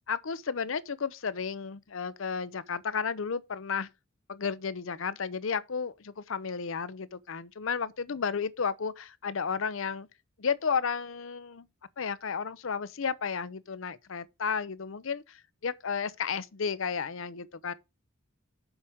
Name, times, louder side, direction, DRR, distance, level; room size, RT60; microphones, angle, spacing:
voice 1, 0.1-3.9 4.3-10.1 10.4-11.7 12.0-17.7, left 6 dB, 70° left, 0.6 m, -33 dB
7.2 x 5.0 x 7.2 m
head